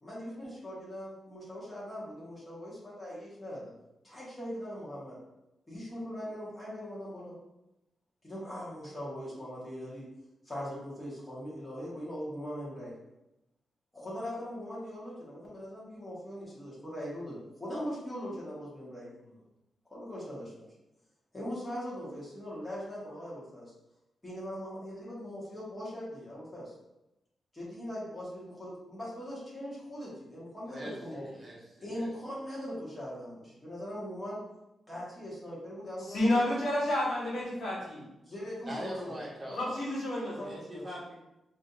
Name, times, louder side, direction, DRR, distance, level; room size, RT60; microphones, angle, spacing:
voice 1, 0.0-3.6 4.0-5.2 5.7-7.3 8.2-10.0 10.4-12.9 13.9-19.4 19.9-20.7 21.3-23.7 24.2-26.7 27.5-31.3 31.8-34.4 34.9-36.4 38.2-39.2 40.4-40.8, equal, 15° left, -7 dB, 1.4 m, -40 dB
voice 2, 30.7-32.1 38.6-39.8 40.4-41.1, equal, 25° right, -6 dB, 1.0 m, -42 dB
voice 3, 36.1-38.0 39.5-40.5, left 1 dB, 70° left, -5 dB, 1.4 m, -30 dB
4.8 x 2.7 x 2.5 m, 0.91 s
wide cardioid pair, 145°, 0 cm